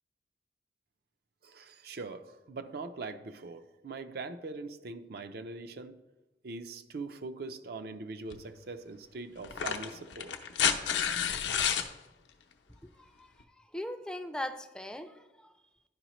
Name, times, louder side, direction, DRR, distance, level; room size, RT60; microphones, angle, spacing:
voice 1, 1.4-6.0 6.4-10.3, right 3 dB, 60° right, 9 dB, 0.5 m, -42 dB
sound 1, 8.3-8.4 9.4-11.9 13.4-13.5, left 8 dB, 80° left, 0.6 m, -30 dB
voice 2, 12.8-13.3 13.6-15.5, left 1 dB, 5° left, 7 dB, 0.4 m, -40 dB
11.0 x 4.8 x 3.0 m, 1.1 s
head